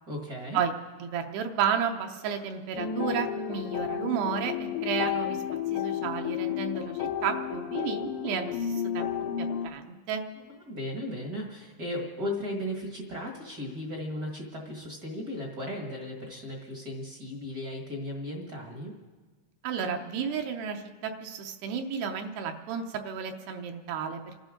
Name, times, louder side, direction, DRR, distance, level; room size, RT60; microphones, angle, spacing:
voice 1, 0.1-0.6 10.3-18.9, left 1 dB, 50° right, 0 dB, 1.0 m, -36 dB
voice 2, 1.0-5.4 5.7-9.1 9.4-10.2 19.6-24.4, right 7 dB, 75° right, 4 dB, 2.8 m, -32 dB
sound 1, 2.8-9.7, left 9 dB, 90° left, 3.2 m, -32 dB
30.0 x 12.5 x 3.8 m, 1.4 s
omnidirectional pair, 4.9 m